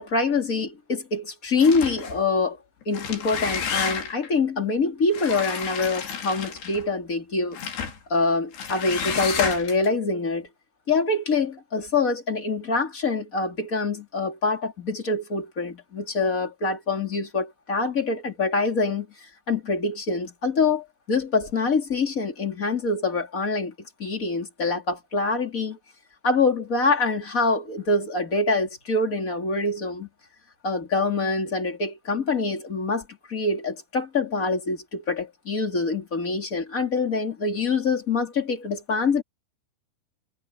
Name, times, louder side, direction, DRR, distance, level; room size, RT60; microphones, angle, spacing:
voice 1, 0.0-2.6 2.8-7.6 8.1-10.5 10.9-19.1 19.5-23.7 24.0-25.8 26.2-30.1 30.6-39.2, left 3 dB, 25° left, 2.3 m, -25 dB
sound 1, 1.6-2.2 2.8-4.3 5.1-6.9 7.5-8.0 8.5-9.9, left 7 dB, 55° left, 5.4 m, -31 dB
omnidirectional pair, 5.9 m